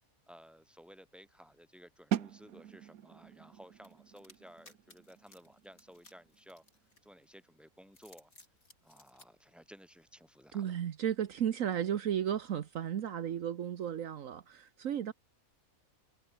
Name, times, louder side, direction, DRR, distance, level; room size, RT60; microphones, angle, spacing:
voice 1, 0.3-6.6 7.0-8.3 8.8-10.8, equal, ahead, 6.2 m, -56 dB
sound 1, 2.1-7.8, right 10 dB, 90° right, 1.4 m, -42 dB
sound 2, 3.8-7.3 7.8-9.3, left 2 dB, 80° left, 6.5 m, -60 dB
voice 2, 10.5-15.1, right 9 dB, 70° right, 1.3 m, -34 dB
omnidirectional pair, 1.5 m